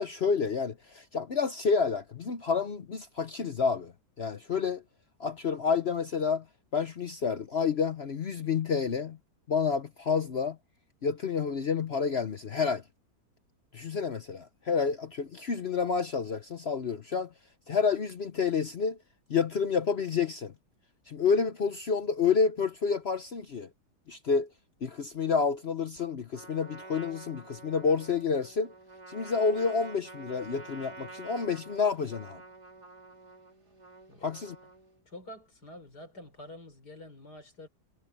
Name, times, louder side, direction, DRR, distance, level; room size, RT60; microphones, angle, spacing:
voice 1, 0.0-4.8 5.2-6.4 6.7-9.2 9.5-10.6 11.0-12.8 13.7-17.3 17.7-19.0 19.3-20.5 21.1-23.7 24.1-24.5 24.8-28.7 29.1-32.4 34.2-34.6, left 5 dB, 50° left, 1.0 m, -29 dB
Trumpet, 26.3-35.0, right 3 dB, 90° right, 5.2 m, -48 dB
voice 2, 35.1-37.7, left 1 dB, 90° left, 5.6 m, -47 dB
omnidirectional pair, 1.7 m